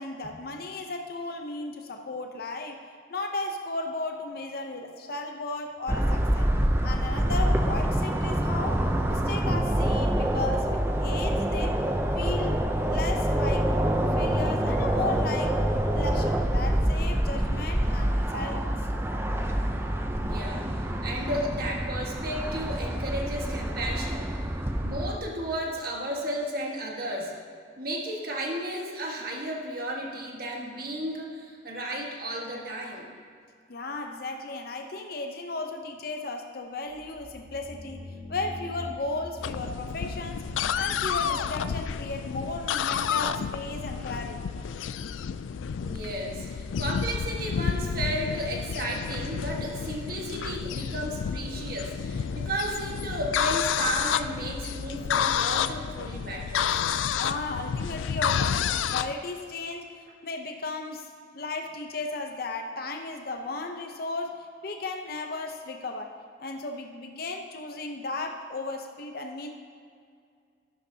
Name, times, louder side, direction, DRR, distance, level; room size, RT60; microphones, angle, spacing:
voice 1, 0.0-2.8 3.1-6.5 6.8-8.8 9.1-11.7 12.1-12.6 12.9-15.6 15.9-18.8 33.7-40.5 40.7-44.5 57.1-66.1 66.4-69.5, left 3 dB, 50° left, 3 dB, 0.7 m, -35 dB
sound 1, 5.9-25.2, right 1 dB, 10° right, 0.5 m, -26 dB
voice 2, 20.2-20.7 21.0-24.3 24.7-27.3 27.8-33.1 45.8-56.7, right 1 dB, 50° right, -1 dB, 1.5 m, -33 dB
sound 2, 36.9-42.0, left 1 dB, 35° right, 1.7 m, -43 dB
sound 3, 39.4-59.1, left 7 dB, 85° left, 0.3 m, -30 dB
13.5 x 11.5 x 2.8 m, 2.2 s
head